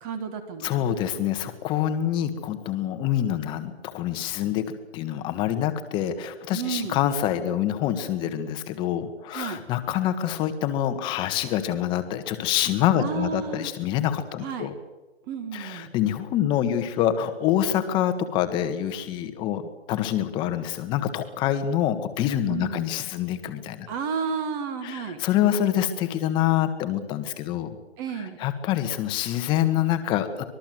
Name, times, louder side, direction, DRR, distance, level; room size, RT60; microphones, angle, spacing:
voice 1, 0.0-1.1 6.5-7.0 9.3-9.6 12.9-13.7 14.4-14.7 15.3-15.9 22.5-22.8 23.9-25.2 28.0-28.4, right 6 dB, 20° right, 9 dB, 1.5 m, -32 dB
voice 2, 0.6-14.7 15.5-19.6 19.9-23.9 24.8-27.8 28.1-30.4, left 11 dB, 15° left, 9 dB, 1.5 m, -26 dB
25.0 x 21.0 x 7.8 m, 1.1 s
hypercardioid pair, 155°, 34 cm